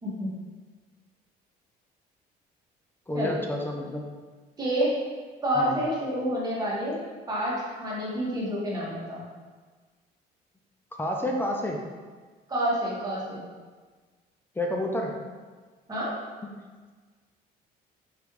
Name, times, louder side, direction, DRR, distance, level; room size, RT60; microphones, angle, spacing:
voice 1, 0.0-0.3 3.1-3.4 4.6-4.9 5.4-7.0 7.3-9.2 12.5-13.4 15.9-16.1, equal, 25° right, -6 dB, 1.5 m, -28 dB
voice 2, 3.1-4.1 5.6-5.8 10.9-11.8 14.5-15.2 16.4-16.5, left 1 dB, 10° left, 0 dB, 0.5 m, -30 dB
4.9 x 3.0 x 3.2 m, 1.4 s
cardioid pair, 110°, 17 cm